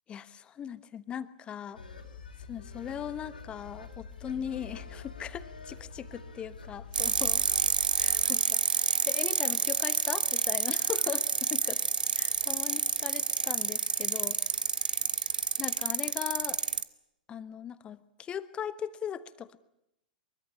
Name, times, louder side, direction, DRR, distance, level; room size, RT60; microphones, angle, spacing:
voice 1, 0.1-1.8 2.5-7.4 8.0-11.8 12.1-14.4 15.6-16.6 17.3-19.6, left 9 dB, 20° left, 15 dB, 1.2 m, -39 dB
sound 1, 1.7-8.3, left 5 dB, 75° left, 4.2 m, -45 dB
sound 2, 6.9-16.8, right 6 dB, 70° right, 0.9 m, -28 dB
24.0 x 23.0 x 8.6 m, 0.82 s
figure-of-eight pair, 100°, 5 cm